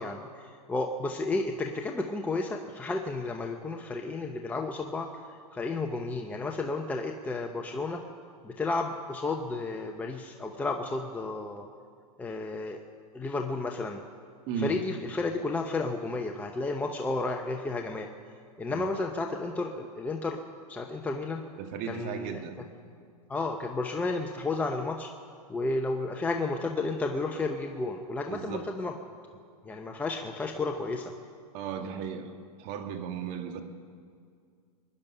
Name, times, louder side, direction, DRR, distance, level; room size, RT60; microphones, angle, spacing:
voice 1, 0.0-8.0 8.4-11.7 12.2-12.8 13.1-14.0 14.6-18.1 18.6-20.4 20.7-21.4 21.8-22.3 23.3-25.1 25.5-28.9 29.6-31.1, left 3 dB, 10° left, 3 dB, 0.8 m, -32 dB
voice 2, 14.5-14.8 18.7-18.9 21.6-22.5 28.3-28.7 31.5-32.3 32.6-33.6, right 7 dB, 45° right, 6 dB, 1.7 m, -35 dB
23.5 x 10.5 x 5.6 m, 2.2 s
hypercardioid pair, 130°, 20 cm